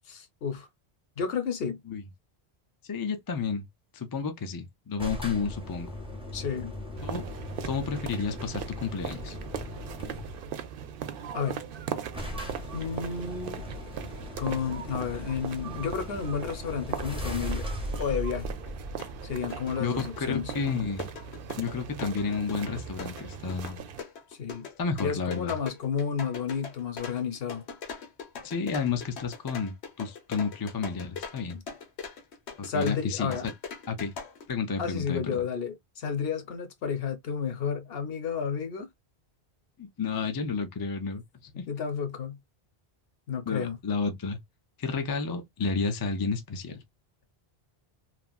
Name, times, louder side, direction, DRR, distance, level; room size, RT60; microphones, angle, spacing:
voice 1, 0.1-0.7 1.2-1.8 6.3-6.7 11.3-11.6 12.7-13.6 14.4-17.7 18.0-18.5 19.2-20.5 24.3-24.7 25.0-27.6 31.5-31.6 32.6-33.4 34.8-38.9 41.7-42.4 43.3-43.8, left 6 dB, 70° left, 0.9 m, -31 dB
voice 2, 2.8-3.7 3.9-5.9 7.0-7.2 7.6-9.4 19.8-21.1 21.6-23.8 24.8-25.5 28.4-31.6 32.7-33.5 33.9-34.1 34.5-35.4 39.8-41.7 43.5-44.4 44.8-46.8, left 5 dB, 35° left, 0.4 m, -31 dB
sound 1, 5.0-10.5 11.5-11.6 11.8-11.9 12.1-19.6, left 1 dB, 5° right, 0.6 m, -38 dB
sound 2, 7.0-24.0, right 8 dB, 65° right, 0.7 m, -39 dB
sound 3, 18.7-18.8 19.0-34.5, left 5 dB, 90° left, 1.1 m, -41 dB
3.0 x 2.4 x 2.2 m
omnidirectional pair, 1.1 m